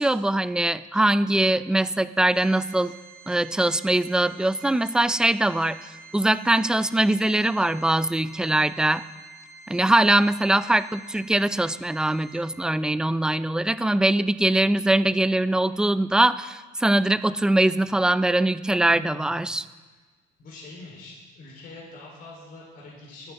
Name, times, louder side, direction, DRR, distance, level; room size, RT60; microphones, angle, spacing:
voice 1, 0.0-2.9 3.3-9.0 9.7-19.6, right 1 dB, 5° right, 14 dB, 0.4 m, -22 dB
Organ, 2.3-12.9, right 4 dB, 90° right, 2.8 m, -48 dB
voice 2, 18.8-19.4 20.4-23.3, left 2 dB, 55° left, -3 dB, 3.8 m, -44 dB
23.0 x 9.2 x 3.6 m, 1.3 s
cardioid pair, 110°, 17 cm